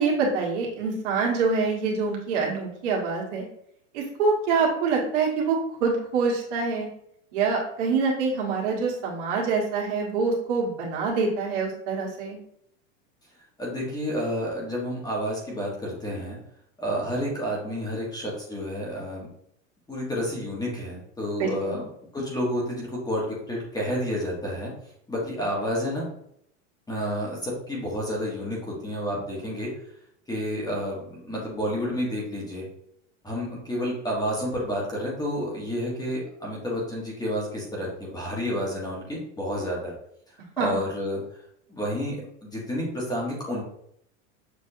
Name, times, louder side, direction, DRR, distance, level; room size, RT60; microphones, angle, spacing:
voice 1, 0.0-3.5 3.9-6.9 7.3-12.4 21.4-21.8 40.6-40.8, right 4 dB, 65° right, -2 dB, 1.6 m, -25 dB
voice 2, 13.6-16.4 16.8-19.3 19.9-21.9 22.1-24.7 25.1-26.1 26.9-29.7 30.3-32.6 33.2-39.9 40.6-41.2 41.7-42.2 42.4-43.6, equal, 10° left, -4 dB, 1.3 m, -30 dB
6.8 x 2.7 x 2.7 m, 0.71 s
supercardioid pair, 130°, 39 cm